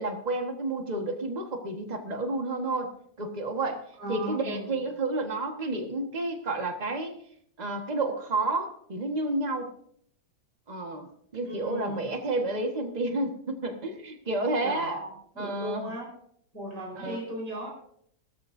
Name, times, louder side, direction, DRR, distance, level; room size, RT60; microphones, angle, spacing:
voice 1, 0.0-2.9 3.2-3.8 4.1-7.1 7.6-9.7 10.7-15.0 15.4-15.9 16.9-17.2, right 2 dB, 25° right, 4 dB, 1.4 m, -30 dB
voice 2, 4.0-4.8 11.5-12.1 14.6-16.1 16.5-17.7, right 1 dB, 60° right, -2 dB, 5.2 m, -37 dB
18.0 x 13.5 x 2.6 m, 0.66 s
omnidirectional pair, 2.0 m